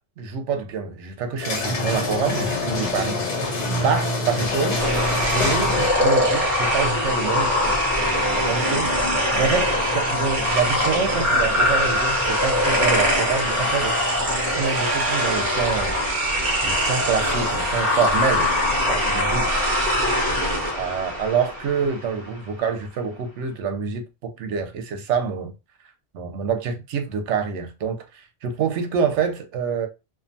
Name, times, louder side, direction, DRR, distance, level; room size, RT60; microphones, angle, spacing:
voice 1, 0.2-3.2 3.5-4.9 5.3-14.0 14.5-16.0 16.6-18.5 18.8-19.6 20.7-25.5 26.1-29.9, right 6 dB, 80° right, 0.9 m, -26 dB
sound 1, 1.4-6.1, left 2 dB, 85° left, 1.3 m, -25 dB
sound 2, 4.8-22.1, left 1 dB, 45° right, 0.9 m, -22 dB
2.5 x 2.3 x 2.5 m
omnidirectional pair, 1.2 m